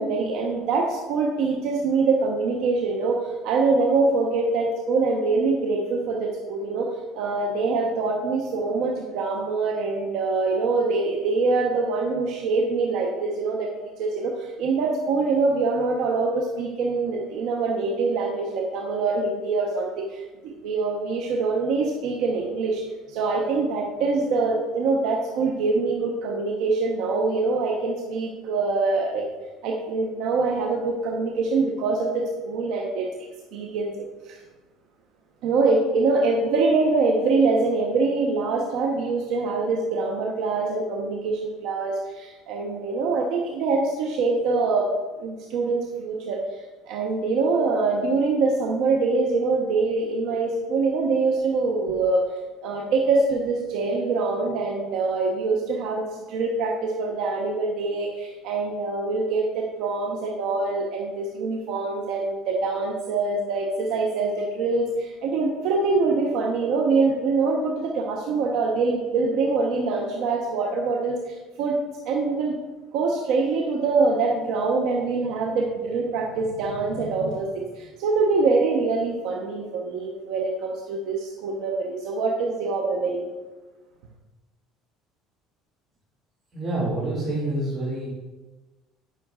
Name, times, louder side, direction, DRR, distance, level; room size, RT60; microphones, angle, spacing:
voice 1, 0.0-6.9 7.1-13.7 14.0-22.8 23.1-29.2 29.6-33.1 33.5-34.4 35.4-44.9 45.2-52.2 52.6-71.8 72.0-72.6 72.9-83.3, right 3 dB, 70° right, 0 dB, 1.0 m, -24 dB
voice 2, 86.5-88.1, right 2 dB, 35° right, -8 dB, 2.4 m, -27 dB
10.5 x 6.0 x 2.4 m, 1.2 s
supercardioid pair, 105°, 0 cm